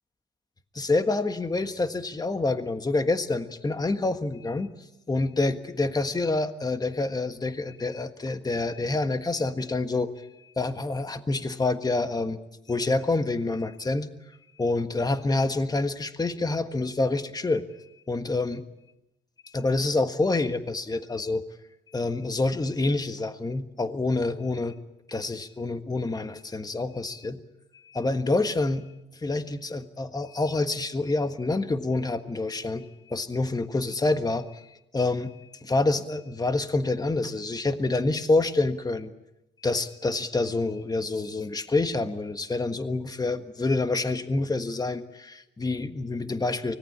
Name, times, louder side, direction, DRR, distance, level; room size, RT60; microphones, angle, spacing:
voice 1, 0.7-4.7 5.1-10.1 10.4-12.4 12.7-14.1 14.6-17.6 18.1-18.6 19.4-21.4 21.9-24.8 25.1-27.4 27.8-28.8 29.2-39.1 39.6-46.8, left 2 dB, 20° left, 9 dB, 1.5 m, -27 dB
24.5 x 18.5 x 8.8 m, 0.91 s
cardioid pair, 90°, 20 cm